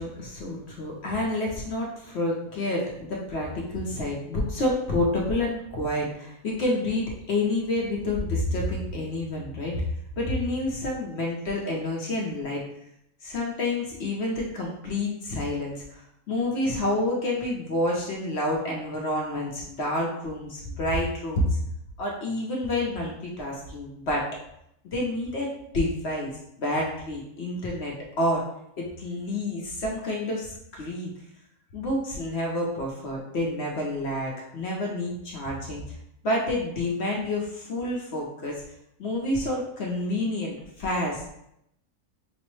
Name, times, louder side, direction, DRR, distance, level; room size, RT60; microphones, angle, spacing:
voice 1, 0.0-9.9 10.2-12.6 13.2-16.0 16.3-21.6 22.0-24.3 24.8-25.5 25.7-26.3 26.6-28.4 28.8-31.1 31.7-35.8 36.2-38.6 39.0-41.3, left 1 dB, 60° left, -2 dB, 0.7 m, -28 dB
5.3 x 2.0 x 3.0 m, 0.77 s
omnidirectional pair, 1.7 m